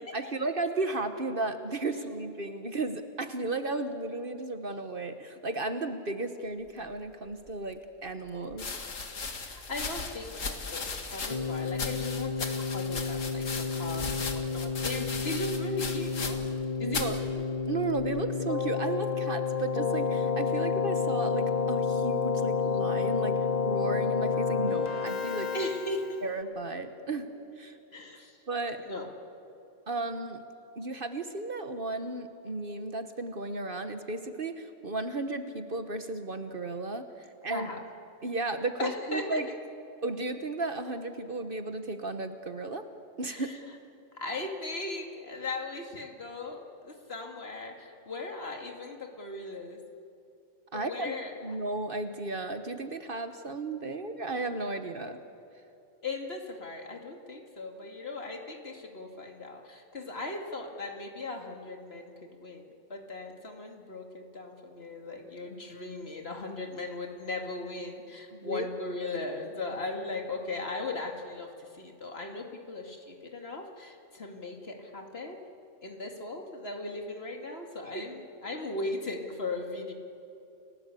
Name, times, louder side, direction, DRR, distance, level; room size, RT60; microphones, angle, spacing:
voice 1, 0.1-8.7 16.8-17.2 17.7-23.4 23.6-25.5 26.2-27.3 27.6-27.8 28.5-28.8 29.9-30.4 30.8-37.7 38.2-39.5 40.0-42.8 43.2-43.5 50.7-51.1 51.4-55.2 68.3-68.7, right 2 dB, 45° right, 8 dB, 1.4 m, -34 dB
sound 1, 7.5-7.6 8.5-16.6 16.9-17.2 18.0-18.4, left 4 dB, 90° left, 2.2 m, -37 dB
voice 2, 9.4-16.5 16.8-17.4 25.5-26.2 27.9-28.4 28.9-29.1 37.5-37.8 38.8-39.4 43.3-43.6 44.1-49.8 50.7-51.6 56.0-75.4 75.8-79.9, left 2 dB, 55° left, 3 dB, 2.5 m, -38 dB
Keyboard (musical), 11.3-26.3, left 5 dB, 35° left, 1.1 m, -30 dB
30.0 x 17.5 x 8.4 m, 2.9 s
omnidirectional pair, 1.3 m